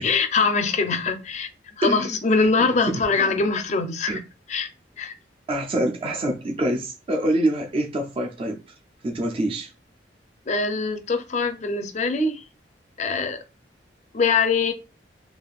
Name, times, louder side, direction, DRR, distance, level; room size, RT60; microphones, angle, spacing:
voice 1, 0.0-1.5 1.8-4.2 4.5-4.7 5.0-5.1 10.5-12.4 13.0-13.4 14.1-14.7, left 4 dB, 40° left, 0.4 m, -23 dB
voice 2, 1.8-2.2 2.9-3.6 4.1-4.2 5.5-8.6 9.0-9.7, right 1 dB, 30° right, 0.4 m, -26 dB
3.4 x 2.5 x 2.3 m
head